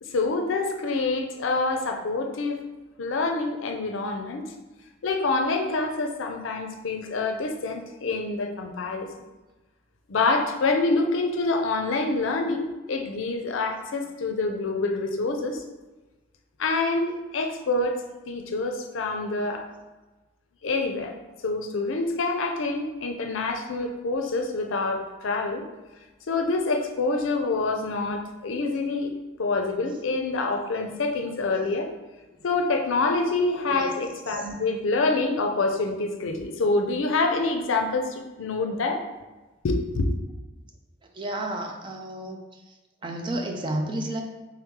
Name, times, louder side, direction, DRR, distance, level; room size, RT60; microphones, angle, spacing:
voice 1, 0.0-2.6 3.0-4.4 5.0-9.1 10.1-15.6 16.6-18.0 18.3-19.7 20.6-21.1 21.4-25.6 26.3-29.1 29.4-31.9 32.4-39.0 39.6-40.1, left 3 dB, 75° left, 4 dB, 0.5 m, -26 dB
voice 2, 41.1-42.4 43.0-44.2, right 1 dB, 25° right, 2 dB, 0.4 m, -31 dB
3.4 x 3.0 x 3.6 m, 1.2 s
head